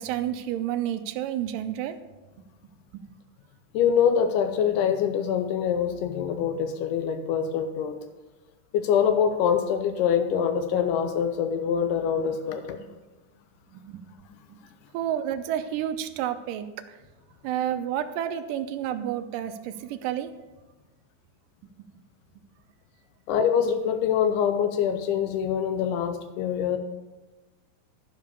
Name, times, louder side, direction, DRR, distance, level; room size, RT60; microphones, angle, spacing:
voice 1, 0.0-2.0 2.9-3.0 13.7-14.0 14.9-17.0 17.4-20.3, right 10 dB, 80° right, 8 dB, 2.0 m, -30 dB
voice 2, 3.7-8.0 8.7-12.8 23.3-26.8, left 8 dB, 85° left, 8 dB, 1.8 m, -24 dB
12.0 x 5.0 x 6.8 m, 1.2 s
omnidirectional pair, 4.4 m